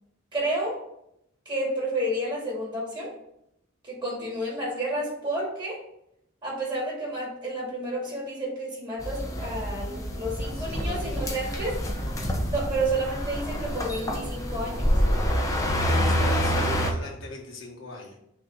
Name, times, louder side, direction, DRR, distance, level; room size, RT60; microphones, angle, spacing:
voice 1, 0.3-0.8 1.5-3.1 3.8-5.8 6.4-11.7 12.5-15.2, right 1 dB, 25° right, -5 dB, 2.6 m, -30 dB
sound 1, 9.0-16.9, equal, 15° left, 0.8 m, -27 dB
voice 2, 10.4-12.3 15.8-18.2, left 2 dB, 65° left, 0 dB, 1.3 m, -42 dB
6.2 x 3.1 x 5.4 m, 0.78 s
head